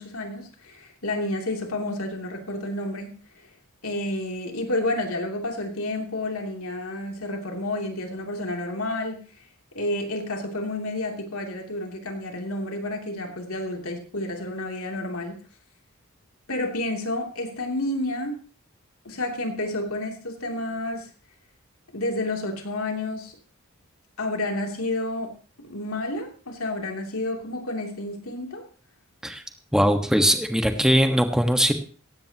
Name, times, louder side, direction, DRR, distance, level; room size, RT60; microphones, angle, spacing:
voice 1, 0.0-3.5 3.8-9.2 9.7-15.4 16.5-18.4 19.0-21.1 21.9-23.4 24.2-28.6, left 1 dB, 90° left, 2 dB, 3.0 m, -30 dB
voice 2, 29.7-31.7, equal, 5° right, 6 dB, 1.4 m, -20 dB
17.0 x 15.5 x 3.0 m, 0.39 s
head